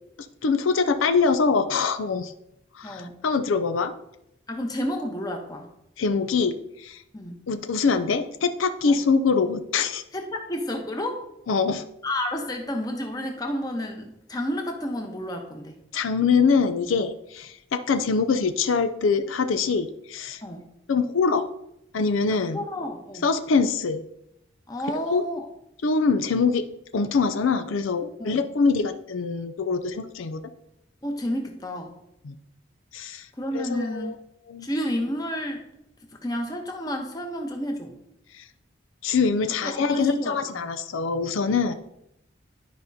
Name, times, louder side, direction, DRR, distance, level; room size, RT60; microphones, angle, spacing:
voice 1, 0.4-2.3 2.8-3.9 6.0-6.5 6.8-7.0 7.5-10.0 11.5-11.8 15.9-20.4 20.9-21.4 21.9-22.6 23.2-24.0 25.1-25.3 25.8-26.6 26.9-30.4 32.2-32.3 32.9-33.3 33.5-34.2 34.5-34.7 38.3-38.4 39.0-41.7, left 5 dB, 85° left, 10 dB, 0.5 m, -24 dB
voice 2, 2.8-3.2 4.5-5.7 7.1-7.4 8.9-9.0 10.1-11.2 12.0-15.8 20.4-20.7 22.3-23.3 24.7-25.5 28.2-28.4 31.0-31.9 33.4-34.1 34.6-35.6 36.1-37.9 39.5-40.7 41.7-41.8, equal, 20° left, 2 dB, 0.9 m, -31 dB
11.5 x 5.1 x 2.8 m, 0.79 s
head